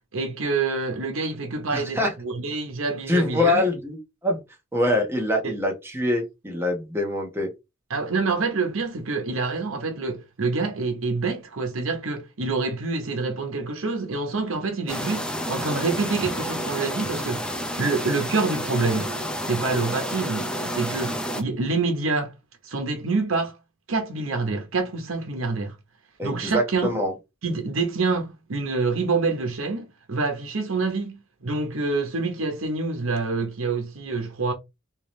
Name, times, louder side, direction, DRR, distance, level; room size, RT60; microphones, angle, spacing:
voice 1, 0.1-3.7 5.4-5.5 7.9-17.4 17.8-19.1 19.5-22.3 22.6-23.6 23.9-25.7 26.2-26.9 27.4-34.5, right 3 dB, 85° right, 0.9 m, -26 dB
voice 2, 1.7-2.1 3.1-4.4 4.7-7.5 26.2-27.1, left 1 dB, 10° right, 1.1 m, -24 dB
sound 1, 14.9-21.4, equal, 5° left, 0.5 m, -30 dB
3.6 x 2.9 x 3.1 m
head